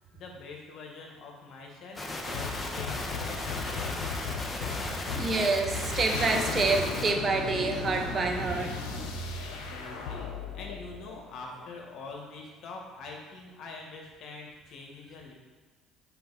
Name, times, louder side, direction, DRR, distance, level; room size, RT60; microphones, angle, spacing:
voice 1, 0.1-2.9 3.2-4.1 7.9-8.1 9.5-10.3 10.5-15.3, left 3 dB, 55° left, 0 dB, 1.8 m, -45 dB
sound 1, 1.9-7.1, left 2 dB, 25° left, 1.3 m, -36 dB
sound 2, 2.3-11.7, left 5 dB, 80° left, 0.9 m, -36 dB
voice 2, 5.1-8.7, right 3 dB, 40° right, 5 dB, 0.9 m, -27 dB
6.9 x 5.5 x 4.2 m, 1.4 s
hypercardioid pair, 70°, 0 cm